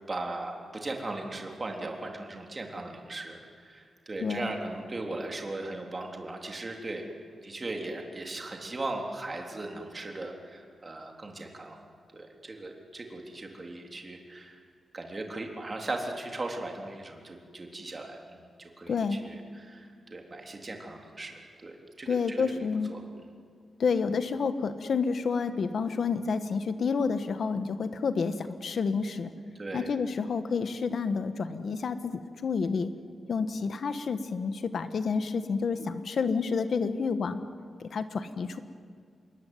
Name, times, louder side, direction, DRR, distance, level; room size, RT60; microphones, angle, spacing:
voice 1, 0.1-7.1 7.4-11.8 12.1-14.6 14.9-23.0 29.5-29.9, right 2 dB, 25° right, 2 dB, 3.5 m, -38 dB
voice 2, 4.2-4.5 18.9-19.2 22.1-22.9 23.8-29.3 29.7-32.9 33.3-37.4 37.8-38.6, left 5 dB, 55° left, 10 dB, 1.5 m, -29 dB
27.0 x 22.5 x 9.5 m, 2.2 s
wide cardioid pair, 170°, 0 cm